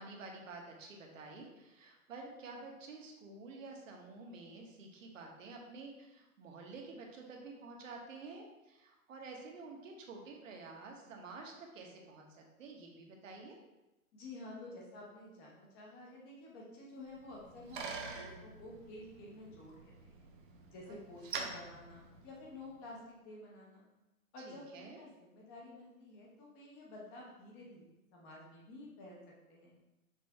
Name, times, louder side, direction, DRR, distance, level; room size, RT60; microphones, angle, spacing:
voice 1, 0.0-13.6 21.3-21.6 24.5-25.0, right 3 dB, 60° right, 1 dB, 1.1 m, -50 dB
voice 2, 14.1-20.3 20.7-23.9 24.3-29.2 29.5-29.7, left 2 dB, 15° left, -3 dB, 0.7 m, -51 dB
Bicycle, 17.1-22.8, right 4 dB, 35° right, 0.5 m, -47 dB
6.0 x 2.6 x 3.3 m, 1.0 s
hypercardioid pair, 155°, 44 cm